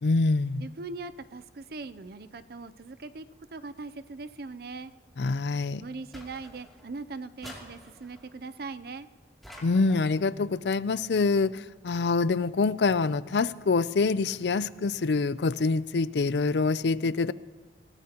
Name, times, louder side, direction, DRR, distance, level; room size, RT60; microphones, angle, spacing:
voice 1, 0.0-0.6 5.2-5.8 9.6-17.3, left 4 dB, 75° left, 17 dB, 0.5 m, -25 dB
voice 2, 0.6-3.3 3.5-4.9 5.8-9.1, right 3 dB, 60° right, 13 dB, 0.5 m, -40 dB
sound 1, 6.1-6.9 7.4-8.3 9.4-10.2, left 1 dB, ahead, 2.8 m, -48 dB
28.0 x 16.5 x 2.9 m, 1.4 s
head